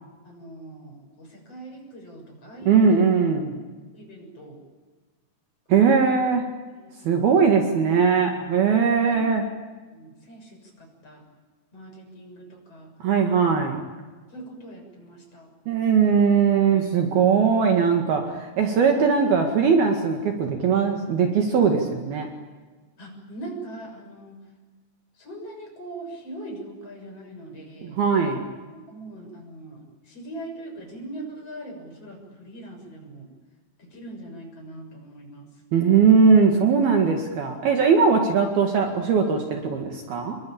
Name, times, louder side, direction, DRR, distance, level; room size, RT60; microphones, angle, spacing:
voice 1, 0.2-3.0 3.9-4.6 5.7-6.4 6.7-6.9 9.0-9.2 9.9-11.2 11.7-12.9 14.3-15.5 23.0-24.4 25.1-28.0 28.9-33.3 33.8-35.5, right 1 dB, 35° left, 2 dB, 7.7 m, -41 dB
voice 2, 2.7-3.5 5.7-6.4 7.1-9.4 13.0-13.8 15.7-22.3 27.8-28.4 35.7-40.4, right 6 dB, 60° right, 3 dB, 3.7 m, -20 dB
27.5 x 23.0 x 8.8 m, 1.3 s
omnidirectional pair, 5.2 m